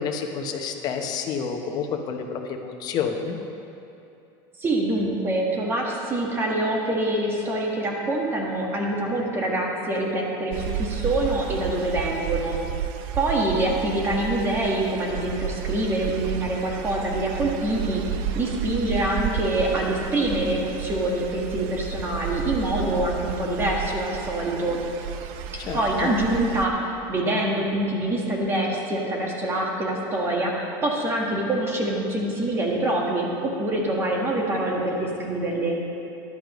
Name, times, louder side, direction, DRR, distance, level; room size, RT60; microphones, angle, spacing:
voice 1, 0.0-3.4 25.6-26.1, left 6 dB, 40° left, 3 dB, 0.9 m, -29 dB
voice 2, 4.6-12.6 13.1-18.0 18.3-24.8 25.7-26.8 27.1-35.7, right 1 dB, 20° right, -1 dB, 1.5 m, -25 dB
sound 1, 10.5-26.7, right 8 dB, 55° right, 0.6 m, -32 dB
14.0 x 11.0 x 3.1 m, 2.7 s
cardioid pair, 155°, 11 cm